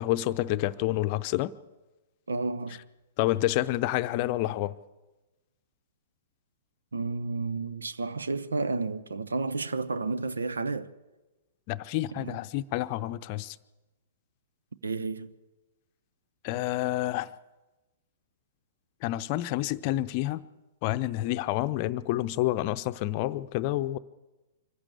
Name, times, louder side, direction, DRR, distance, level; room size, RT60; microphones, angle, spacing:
voice 1, 0.0-1.5 3.2-4.7 11.7-13.6 16.4-17.3 19.0-20.4 20.8-24.0, left 15 dB, 40° left, 0.7 m, -28 dB
voice 2, 2.3-2.9 6.9-10.9 12.2-12.4 14.8-15.3, right 3 dB, 75° right, 0.9 m, -31 dB
25.0 x 15.0 x 8.5 m
figure-of-eight pair, 110°, 0 cm